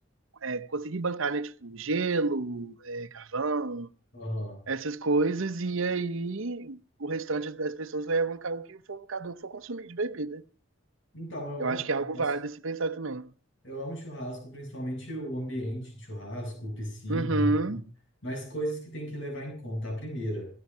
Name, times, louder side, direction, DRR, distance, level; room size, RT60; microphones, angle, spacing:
voice 1, 0.4-3.9 4.7-10.4 11.6-13.3 17.1-17.8, right 3 dB, 75° right, 0.8 m, -30 dB
voice 2, 4.1-4.6 11.1-11.8 12.1-12.2 13.6-17.8 18.2-20.5, equal, 65° left, 7.3 m, -35 dB
17.0 x 15.0 x 5.6 m
head